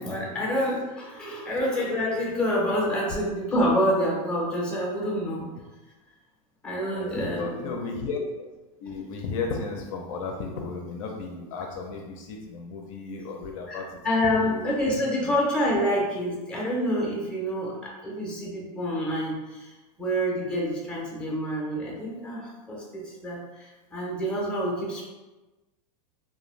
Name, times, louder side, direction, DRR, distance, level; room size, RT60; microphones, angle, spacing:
voice 1, 0.0-5.4 6.6-7.7 13.7-25.0, equal, 5° left, -4 dB, 0.7 m, -27 dB
voice 2, 6.9-8.5 8.8-14.0 14.4-14.6 15.2-15.4, left 4 dB, 60° left, 1 dB, 0.5 m, -34 dB
2.4 x 2.2 x 3.1 m, 1.2 s
supercardioid pair, 135°, 20 cm